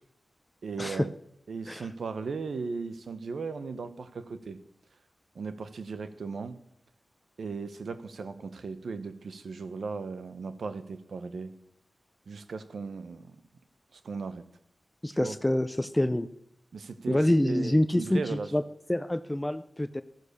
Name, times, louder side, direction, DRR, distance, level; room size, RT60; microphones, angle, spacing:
voice 1, 0.6-1.1 1.5-4.6 5.3-6.6 7.4-11.5 12.3-13.4 13.9-14.4 15.1-15.4 16.7-18.5, right 4 dB, 80° right, 11 dB, 1.0 m, -37 dB
voice 2, 15.0-16.3 17.1-18.6 18.9-20.0, left 1 dB, 15° left, 12 dB, 0.5 m, -26 dB
14.0 x 9.9 x 6.7 m, 0.75 s
wide cardioid pair, 90°, 0 cm